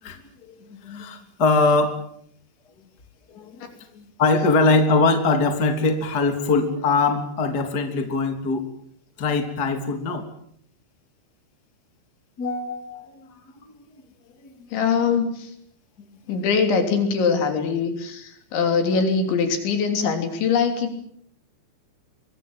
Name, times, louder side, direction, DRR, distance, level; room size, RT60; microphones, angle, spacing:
voice 1, 0.7-2.0 3.3-8.7 9.2-10.2 12.4-13.2, left 3 dB, 25° left, 6 dB, 3.0 m, -22 dB
voice 2, 14.7-15.5 16.3-21.0, left 5 dB, 70° left, 6 dB, 5.5 m, -22 dB
25.5 x 23.5 x 7.5 m, 0.67 s
omnidirectional pair, 5.6 m